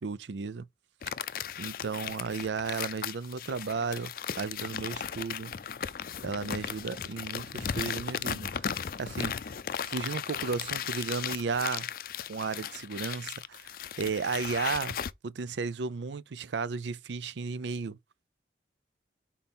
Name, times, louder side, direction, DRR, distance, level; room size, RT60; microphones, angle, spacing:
voice 1, 0.0-0.6 1.6-4.1 4.4-5.5 6.2-9.6 9.8-11.9 12.3-15.0 15.2-18.0, right 4 dB, 85° right, 0.5 m, -34 dB
sound 1, 1.0-15.1, left 8 dB, 55° left, 0.4 m, -36 dB
5.4 x 4.2 x 4.1 m
head